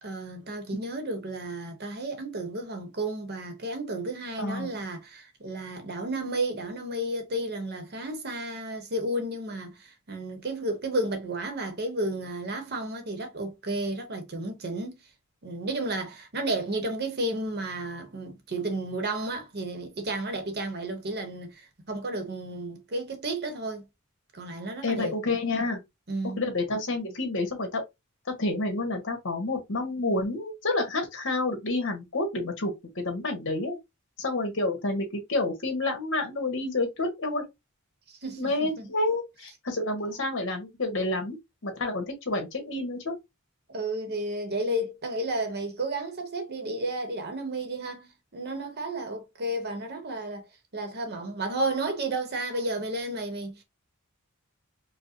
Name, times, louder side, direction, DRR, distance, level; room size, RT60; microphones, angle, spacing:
voice 1, 0.0-15.0 15.4-23.9 24.3-25.1 26.1-26.4 38.1-38.9 43.7-50.5 50.7-53.6, right 1 dB, 50° right, 1.0 m, -32 dB
voice 2, 4.4-4.8 24.8-25.8 26.4-27.8 28.4-33.8 34.2-37.4 38.4-41.4 41.6-43.1, left 2 dB, 60° left, 1.5 m, -29 dB
4.8 x 2.2 x 2.7 m
head